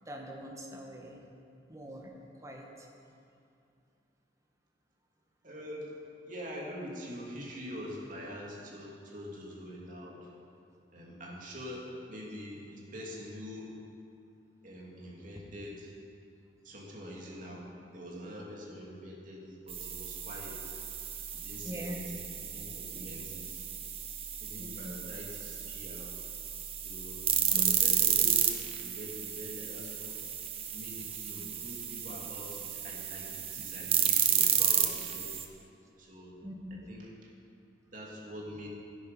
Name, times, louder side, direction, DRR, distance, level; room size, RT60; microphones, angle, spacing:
voice 1, 0.0-1.2 1.7-2.9 21.6-22.2 22.9-23.4 24.6-25.0 27.5-27.8 36.4-36.8, equal, 20° right, 0 dB, 1.4 m, -43 dB
voice 2, 5.4-6.0 6.3-10.3 10.9-13.7 14.6-15.9 16.6-17.7 17.9-20.7 21.3-23.6 24.4-26.1 26.8-28.5 28.8-30.3 30.7-35.4 36.0-36.4 36.7-37.1 37.9-38.7, equal, 50° right, -3 dB, 2.5 m, -45 dB
sound 1, 19.7-35.4, right 8 dB, 35° right, 0.9 m, -32 dB
13.0 x 10.5 x 5.4 m, 2.5 s
head